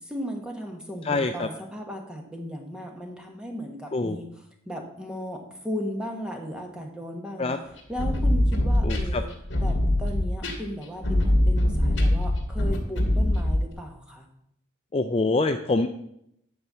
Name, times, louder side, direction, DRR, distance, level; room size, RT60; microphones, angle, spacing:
voice 1, 0.0-4.3 4.7-7.6 7.9-9.3 9.6-14.3, equal, 5° right, 2 dB, 1.2 m, -36 dB
voice 2, 1.0-1.5 3.9-4.2 7.4-7.6 8.8-9.2 14.9-15.9, left 3 dB, 30° left, 6 dB, 0.4 m, -25 dB
sound 1, 7.8-13.7, left 1 dB, 60° left, 1.8 m, -23 dB
9.6 x 4.4 x 6.8 m, 0.75 s
head